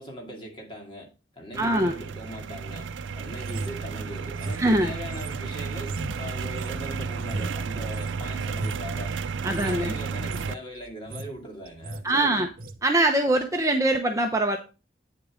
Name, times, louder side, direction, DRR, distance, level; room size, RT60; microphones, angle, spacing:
voice 1, 0.0-2.9 3.2-9.1 9.5-12.4, equal, 25° left, 2.5 m, -40 dB
sound 1, 1.5-10.5, right 5 dB, 85° right, 0.5 m, -32 dB
voice 2, 1.6-1.9 4.5-4.9 9.4-9.9 12.0-12.5 12.8-14.6, right 1 dB, 15° right, 0.7 m, -23 dB
sound 2, 3.4-8.2 8.5-8.9 9.4-9.7 10.1-10.5 10.8-11.4 11.6-12.0 12.6-12.8, right 2 dB, 50° right, 0.7 m, -38 dB
9.2 x 6.7 x 3.8 m
head